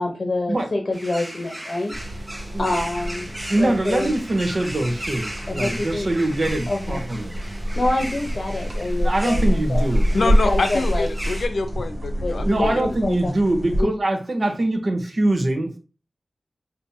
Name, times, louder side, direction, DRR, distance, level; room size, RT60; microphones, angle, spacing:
voice 1, 0.0-1.9 2.6-4.1 5.5-6.1 6.7-7.0 7.8-9.8 10.2-11.1 12.2-13.3 13.8-13.9 14.4-14.5, left 2 dB, 55° left, 0.8 m, -26 dB
sound 1, 0.9-11.5, right 1 dB, 15° right, 0.6 m, -36 dB
sound 2, 1.9-13.8, equal, 85° right, 1.3 m, -26 dB
voice 2, 3.5-7.4 9.0-10.2 12.5-15.8, right 1 dB, 50° right, 0.9 m, -23 dB
voice 3, 10.1-13.0, left 3 dB, 85° left, 0.6 m, -26 dB
5.3 x 2.8 x 2.7 m
wide cardioid pair, 80°, 0 cm